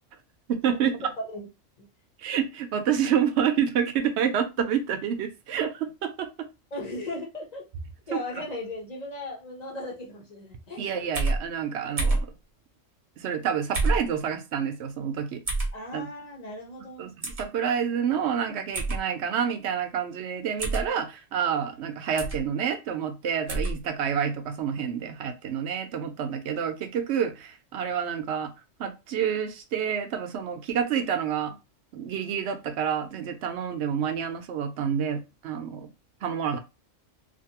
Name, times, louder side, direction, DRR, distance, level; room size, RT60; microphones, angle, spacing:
voice 1, 0.5-0.9 2.2-6.5 8.1-8.2 10.8-12.3 13.2-15.4 15.9-16.1 17.0-28.5 28.8-31.6 31.9-35.9 36.2-36.6, right 8 dB, 65° right, 0.8 m, -28 dB
voice 2, 1.2-1.5 1.8-1.9 6.7-7.6 8.1-10.9 15.7-17.1, left 1 dB, 35° left, 0.9 m, -37 dB
sound 1, 11.1-11.4 12.0-12.3 13.7-14.0 15.5-15.7 17.2-17.4 18.7-19.0 20.6-20.9 22.2-22.4 23.5-23.7, right 2 dB, 35° right, 0.7 m, -26 dB
2.6 x 2.5 x 2.8 m
omnidirectional pair, 1.3 m